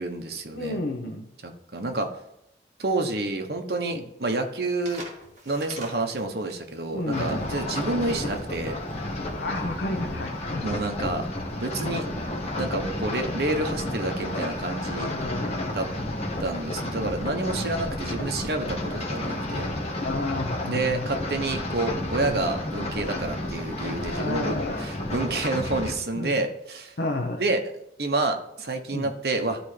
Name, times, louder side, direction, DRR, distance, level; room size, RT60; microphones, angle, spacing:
voice 1, 0.0-0.8 1.4-2.1 2.8-5.0 5.5-8.8 10.6-11.3 11.6-12.1 12.6-15.1 15.7-15.9 16.4-19.7 20.6-26.9 27.4-27.6 28.0-29.6, right 2 dB, 65° right, 4 dB, 1.0 m, -29 dB
voice 2, 0.5-1.3 3.9-4.0 6.9-7.5 9.4-10.7 11.8-12.0 15.0-15.7 17.5-17.7 20.0-21.1 22.2-22.4 24.0-24.8 26.1-26.4 27.0-27.4 28.9-29.1, left 2 dB, 80° left, 1 dB, 0.8 m, -32 dB
sound 1, 4.8-10.2, right 2 dB, 45° right, 1.8 m, -46 dB
sound 2, 7.1-25.9, left 1 dB, 35° left, 1.2 m, -31 dB
13.0 x 4.3 x 3.3 m, 0.83 s
head